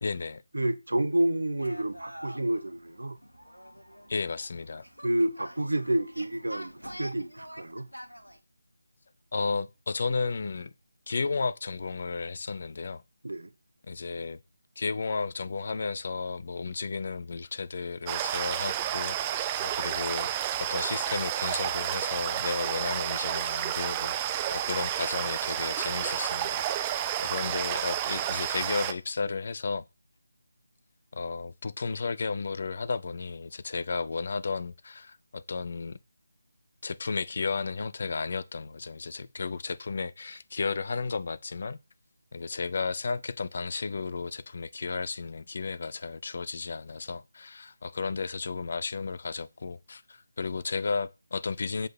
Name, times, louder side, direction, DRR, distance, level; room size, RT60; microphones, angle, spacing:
voice 1, 0.0-0.4 4.1-4.8 9.3-10.7 11.1-13.0 13.9-14.4 14.8-20.3 20.6-29.8 31.1-36.0 36.8-41.8 42.3-51.9, left 4 dB, 40° left, 0.8 m, -33 dB
voice 2, 0.5-3.2 5.0-6.7 7.0-7.9 13.2-13.5, right 1 dB, 65° right, 1.0 m, -29 dB
sound 1, 1.6-8.4, equal, 90° right, 1.4 m, -46 dB
sound 2, 18.1-28.9, right 11 dB, 15° right, 0.6 m, -30 dB
7.9 x 5.2 x 5.9 m
figure-of-eight pair, 155°, 0 cm